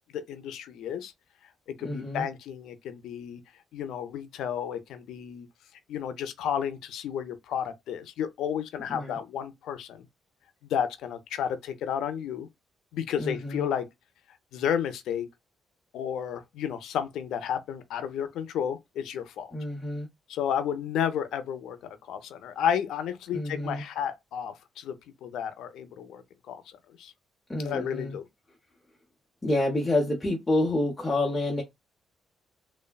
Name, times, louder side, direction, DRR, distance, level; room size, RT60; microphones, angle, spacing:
voice 1, 0.1-1.1 1.8-3.4 3.7-5.5 5.9-10.1 10.6-12.5 12.9-13.9 14.5-15.3 15.9-19.5 20.3-21.8 22.0-26.6 27.0-27.1 27.6-28.2, left 8 dB, 80° left, 0.5 m, -32 dB
voice 2, 1.8-2.3 8.9-9.2 13.2-13.6 19.5-20.1 23.3-23.8 27.5-28.2 29.4-31.6, left 1 dB, 20° left, 0.7 m, -28 dB
3.3 x 2.0 x 2.2 m
cardioid pair, 90°, 0 cm